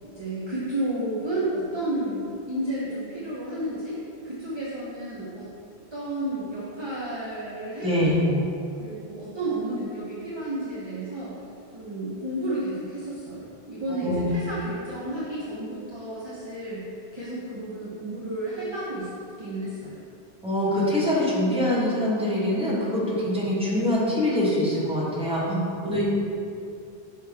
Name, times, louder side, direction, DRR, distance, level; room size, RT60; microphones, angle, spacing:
voice 1, 0.0-4.0 4.2-5.5 5.9-8.4 8.8-11.4 11.7-16.8 17.1-19.1 19.4-20.0 25.5-26.0, right 1 dB, 30° right, -7 dB, 0.8 m, -32 dB
voice 2, 7.8-8.2 13.9-14.3 20.4-25.5 25.8-26.0, left 1 dB, 5° right, -8 dB, 1.3 m, -24 dB
5.9 x 4.6 x 3.5 m, 2.6 s
omnidirectional pair, 1.1 m